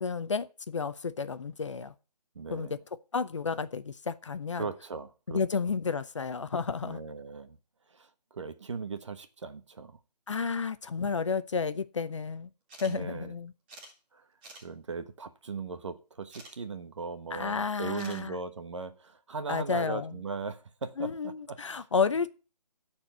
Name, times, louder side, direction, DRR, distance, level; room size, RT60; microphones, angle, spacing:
voice 1, 0.0-1.9 2.5-2.7 3.1-4.6 5.3-7.0 10.3-12.5 12.8-13.5 17.3-18.4 19.5-20.1 21.0-22.4, left 5 dB, 45° left, 0.7 m, -31 dB
voice 2, 2.3-2.7 4.6-5.4 6.8-7.6 7.9-10.0 12.9-13.3 14.1-14.3 14.6-21.9, right 4 dB, 45° right, 1.1 m, -38 dB
sound 1, 12.7-12.9 13.2-13.3 13.7-13.9 14.4-14.6 16.3-16.5 18.0-18.2, right 2 dB, 15° right, 1.4 m, -48 dB
13.5 x 4.6 x 8.0 m
hypercardioid pair, 170°, 21 cm